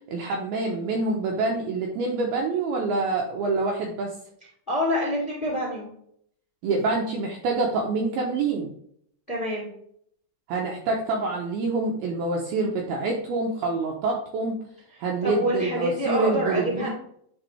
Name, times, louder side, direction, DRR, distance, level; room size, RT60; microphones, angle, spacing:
voice 1, 0.1-4.1 6.6-8.7 10.5-14.6 15.0-16.9, right 3 dB, 80° right, 0 dB, 2.3 m, -26 dB
voice 2, 4.7-5.9 9.3-9.7 14.9-16.9, equal, 20° left, -4 dB, 1.2 m, -27 dB
11.5 x 3.8 x 3.3 m, 0.67 s
omnidirectional pair, 5.4 m